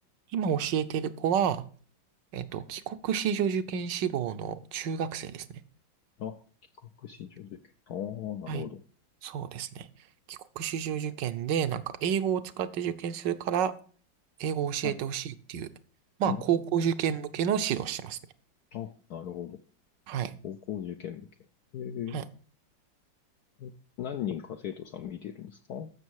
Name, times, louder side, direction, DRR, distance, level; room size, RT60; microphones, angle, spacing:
voice 1, 0.3-1.6 2.3-5.5 8.5-8.6 9.2-9.9 10.3-13.7 14.4-15.7 16.2-18.2 20.1-20.4 22.1-22.2, right 8 dB, 70° right, 12 dB, 1.4 m, -30 dB
voice 2, 6.8-7.6 7.9-8.8 14.8-15.0 16.3-16.8 18.7-19.6 20.4-21.3 21.7-22.2 23.6-25.9, left 9 dB, 70° left, 6 dB, 1.0 m, -38 dB
14.0 x 6.3 x 4.6 m, 0.42 s
omnidirectional pair, 2.0 m